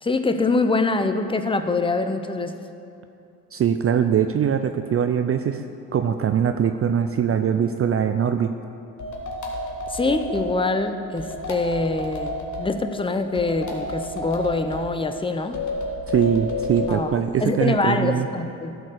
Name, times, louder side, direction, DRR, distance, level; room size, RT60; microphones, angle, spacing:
voice 1, 0.0-2.6 9.9-15.6 16.9-17.1 17.4-18.8, left 3 dB, 15° left, 8 dB, 0.7 m, -24 dB
voice 2, 3.5-5.6 5.9-8.5 16.1-18.3, right 8 dB, 35° right, 8 dB, 0.4 m, -22 dB
sound 1, 9.0-10.6 11.2-12.7 13.4-14.9 15.5-17.1, left 1 dB, 45° left, 1.8 m, -30 dB
12.5 x 4.3 x 6.4 m, 2.6 s
supercardioid pair, 60°, 40 cm